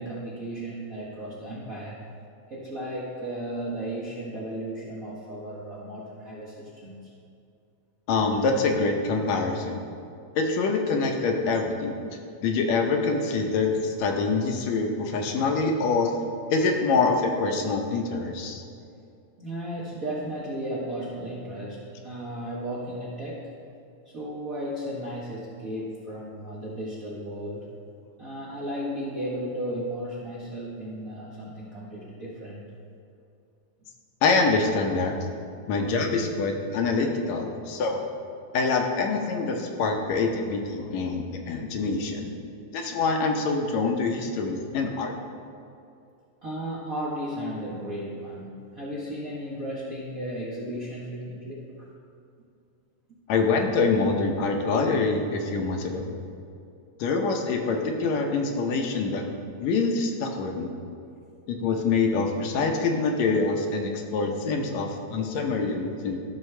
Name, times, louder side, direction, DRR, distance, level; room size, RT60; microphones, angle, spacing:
voice 1, 0.0-2.0 2.5-7.1 19.4-23.5 24.0-27.7 28.2-32.6 46.4-51.9, right 1 dB, 55° right, -8 dB, 0.9 m, -35 dB
voice 2, 8.1-9.9 10.4-12.0 12.4-16.2 16.5-18.6 34.2-35.2 35.7-38.0 38.5-42.3 42.7-45.2 53.3-56.2 57.0-59.2 59.6-60.7 61.5-66.2, left 4 dB, 75° left, 2 dB, 2.0 m, -25 dB
14.0 x 6.2 x 3.3 m, 2.5 s
omnidirectional pair, 3.3 m